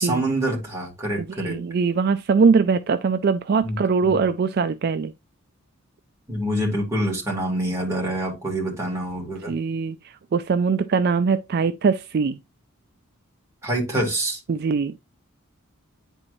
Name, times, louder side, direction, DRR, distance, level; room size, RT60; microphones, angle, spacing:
voice 1, 0.0-1.6 3.6-4.2 6.3-9.5 13.6-14.4, right 1 dB, 15° right, 2.5 m, -26 dB
voice 2, 1.4-5.1 9.5-12.4 14.5-14.9, right 5 dB, 50° right, 0.3 m, -22 dB
9.7 x 4.5 x 2.6 m
head